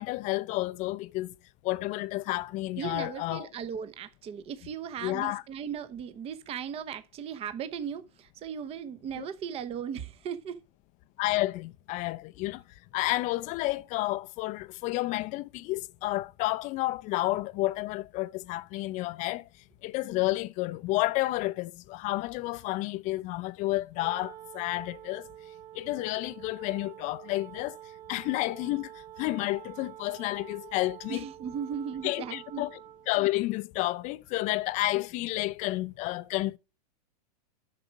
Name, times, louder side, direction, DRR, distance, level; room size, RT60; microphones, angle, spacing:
voice 1, 0.0-1.3 1.6-3.5 5.0-5.4 9.2-9.3 11.2-12.6 12.9-19.5 19.8-25.3 25.7-27.8 28.1-28.9 29.2-31.2 32.0-32.8 33.1-36.6, left 18 dB, 35° left, 0.6 m, -30 dB
voice 2, 2.8-10.6 31.1-32.6, right 8 dB, 30° right, 1.1 m, -37 dB
Wind instrument woodwind instrument, 23.9-33.1, right 13 dB, 70° right, 1.0 m, -47 dB
11.0 x 6.6 x 4.7 m
hypercardioid pair, 125°, 21 cm